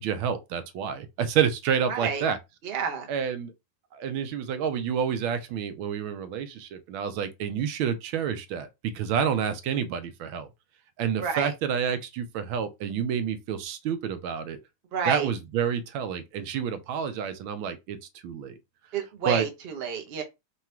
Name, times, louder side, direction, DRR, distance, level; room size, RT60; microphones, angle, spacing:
voice 1, 0.0-2.4 3.1-3.5 3.9-8.7 8.9-10.5 11.0-14.6 15.1-18.0 18.2-18.6 19.3-19.5, right 7 dB, 85° right, 1.4 m, -29 dB
voice 2, 1.9-2.2 2.6-3.1 11.2-11.5 14.9-15.3 18.9-20.2, right 6 dB, 45° right, 0.8 m, -30 dB
3.9 x 2.3 x 4.3 m
omnidirectional pair, 2.2 m